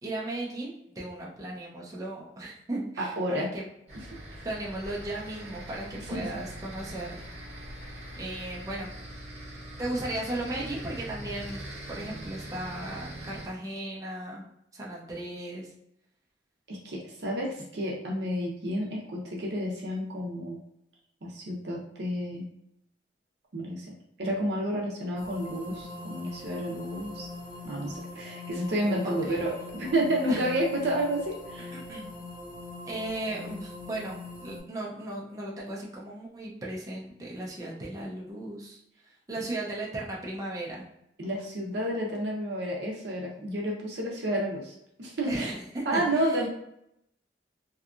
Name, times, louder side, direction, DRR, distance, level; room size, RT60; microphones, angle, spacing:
voice 1, 0.0-3.6 4.4-7.1 8.2-8.9 9.8-14.4 14.7-15.7 29.0-29.3 30.3-30.4 31.7-32.1 32.9-38.8 39.3-40.8 45.3-46.4, right 1 dB, 20° right, -4 dB, 0.6 m, -36 dB
voice 2, 3.0-3.5 6.1-6.2 16.7-20.6 21.2-22.5 23.5-23.9 24.2-27.3 27.6-31.7 41.2-45.5 45.9-46.5, right 1 dB, 70° right, -2 dB, 0.6 m, -30 dB
sound 1, 3.9-13.5, right 1 dB, 40° right, 0.9 m, -42 dB
sound 2, 25.2-34.6, left 2 dB, 30° left, 1.0 m, -42 dB
2.8 x 2.3 x 2.4 m, 0.78 s
head